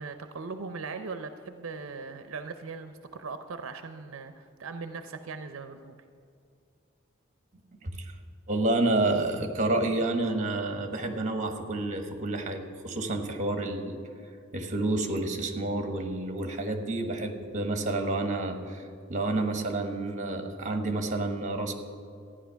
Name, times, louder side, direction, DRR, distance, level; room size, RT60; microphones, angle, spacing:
voice 1, 0.0-6.0, right 4 dB, 80° right, 8 dB, 0.6 m, -39 dB
voice 2, 7.8-8.1 8.5-14.0 14.5-21.7, right 2 dB, 40° right, 6 dB, 1.3 m, -29 dB
13.5 x 9.9 x 5.7 m, 2.4 s
head